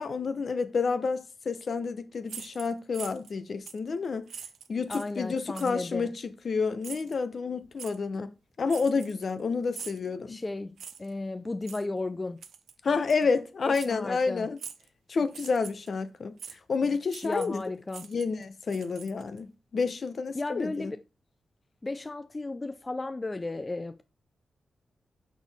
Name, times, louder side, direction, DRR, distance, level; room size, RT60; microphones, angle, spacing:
voice 1, 0.0-4.3 4.7-8.3 8.6-10.4 12.8-14.6 15.1-17.6 18.0-20.9, left 4 dB, 55° left, 0.8 m, -29 dB
sound 1, 2.3-3.3 3.7-3.9 4.3-5.2 5.5-5.9 6.8-7.2 7.8-8.0 8.7-9.4 9.7-10.1 10.8-11.1 11.6-11.8 12.4-12.7 13.1-13.2 13.7-13.9 14.6-14.9 15.3-15.9 16.4-16.6 17.1-17.6 17.9-19.4, right 7 dB, 90° right, 0.6 m, -44 dB
voice 2, 4.9-6.1 10.3-12.4 13.7-14.5 17.2-18.1 20.3-21.0 21.8-24.0, left 2 dB, 25° left, 0.4 m, -34 dB
6.2 x 6.0 x 3.5 m
wide cardioid pair, 110°, 0 cm